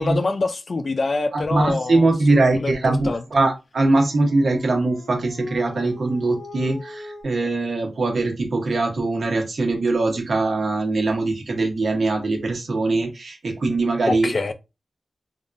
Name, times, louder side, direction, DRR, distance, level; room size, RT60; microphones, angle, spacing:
voice 1, 0.0-3.2 14.1-14.5, left 3 dB, 50° left, 0.4 m, -25 dB
voice 2, 1.3-14.5, right 2 dB, 65° right, 1.0 m, -22 dB
Dog, 3.8-7.2, left 2 dB, 70° left, 1.0 m, -41 dB
3.5 x 2.3 x 2.6 m
wide cardioid pair, 125°, 0 cm